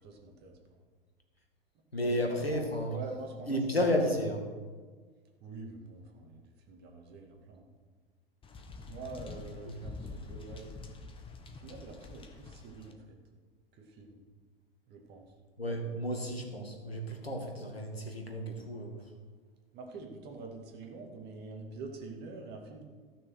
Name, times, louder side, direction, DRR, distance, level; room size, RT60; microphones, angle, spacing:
voice 1, 0.0-0.8 2.0-2.2 2.5-3.6 5.4-7.7 8.9-10.7 11.6-13.2 13.8-14.2 14.9-15.3 19.7-22.8, right 3 dB, 35° right, 2 dB, 2.3 m, -46 dB
voice 2, 1.9-3.0 3.5-4.5 9.7-9.8 15.6-19.0, equal, 85° left, 2 dB, 2.1 m, -32 dB
sound 1, 8.4-12.9, left 3 dB, 15° left, 1.3 m, -46 dB
14.5 x 6.6 x 6.4 m, 1.5 s
figure-of-eight pair, 95°, 30 cm